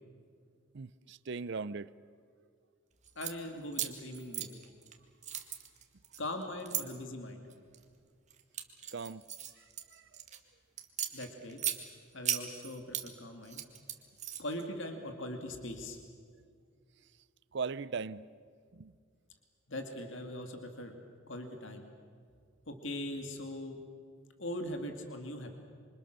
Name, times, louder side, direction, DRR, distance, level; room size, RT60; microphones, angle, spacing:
voice 1, 0.7-1.9 8.9-9.2 9.6-9.7 9.9-10.1 17.5-18.3 18.7-18.9, right 4 dB, 55° right, 0.5 m, -39 dB
sound 1, 3.0-3.3 3.7-4.9 5.2-6.8 7.5-7.8 8.3-10.4 10.8-11.8 12.2-13.1 13.4-14.6, right 10 dB, 35° right, 1.9 m, -37 dB
voice 2, 3.2-4.5 6.2-7.4 11.1-11.6 12.1-13.6 14.4-16.0 19.7-21.0 21.3-21.8 22.7-23.8 24.4-25.5, left 1 dB, 60° left, 2.5 m, -41 dB
27.0 x 25.5 x 6.7 m
head